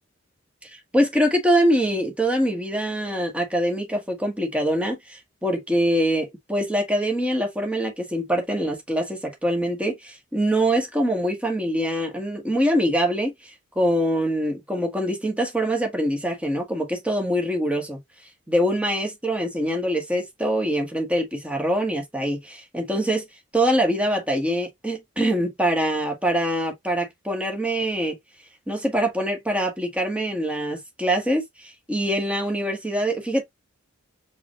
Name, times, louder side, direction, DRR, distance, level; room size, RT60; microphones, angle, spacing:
voice 1, 0.6-13.3 13.7-18.0 18.5-23.3 23.5-28.2 28.7-33.4, equal, 5° right, 1.4 m, -24 dB
4.9 x 2.4 x 2.9 m
head